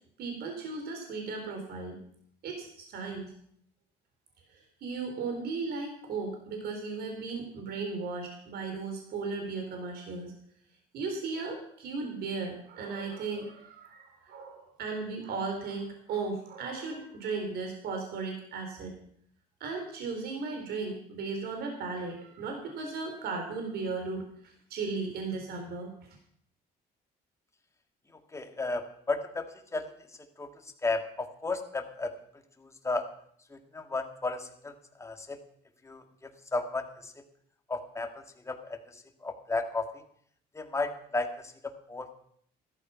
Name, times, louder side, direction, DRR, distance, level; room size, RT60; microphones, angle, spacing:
voice 1, 0.2-2.0 2.4-3.3 4.5-10.3 10.9-18.9 19.6-25.9, right 4 dB, 70° right, 3 dB, 4.2 m, -36 dB
voice 2, 28.3-29.5 29.7-29.9 30.4-30.5 30.8-32.1 32.8-33.1 33.5-34.7 35.0-35.4 35.8-36.0 36.5-37.1 37.7-38.1 38.5-38.8 39.2-39.9 40.5-41.3 41.6-42.1, left 3 dB, 15° left, 5 dB, 2.1 m, -33 dB
15.0 x 13.5 x 5.8 m, 0.64 s
cardioid pair, 110°, 17 cm